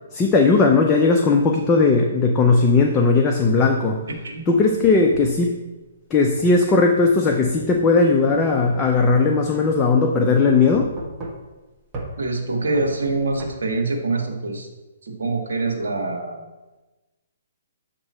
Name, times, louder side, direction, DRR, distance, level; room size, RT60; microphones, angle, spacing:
voice 1, 0.1-4.0 4.5-5.5 6.1-10.9, left 4 dB, 15° left, 1 dB, 0.6 m, -17 dB
sound 1, 3.9-5.4 6.4-6.6 7.4-9.4 9.7-9.8 10.7-11.6 11.9-12.1 12.7-13.5, right 2 dB, 20° right, 1.2 m, -36 dB
voice 2, 12.2-14.7 15.0-16.5, right 3 dB, 75° right, 2 dB, 1.4 m, -25 dB
7.5 x 3.0 x 5.5 m, 1.1 s
hypercardioid pair, 145°, 0 cm